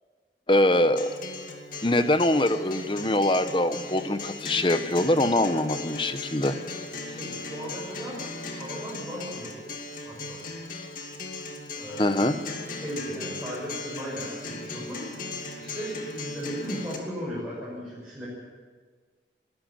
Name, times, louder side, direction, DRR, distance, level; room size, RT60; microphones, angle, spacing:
voice 1, 0.5-1.1 1.8-6.6 12.0-12.4, left 1 dB, 30° left, 10 dB, 1.0 m, -23 dB
Acoustic guitar, 1.0-17.0, left 3 dB, 50° left, 2.5 m, -38 dB
voice 2, 7.0-9.6 10.0-10.4 11.8-12.3 12.8-15.0 15.6-18.3, equal, 5° right, -8 dB, 6.2 m, -36 dB
21.0 x 13.0 x 9.5 m, 1.5 s
head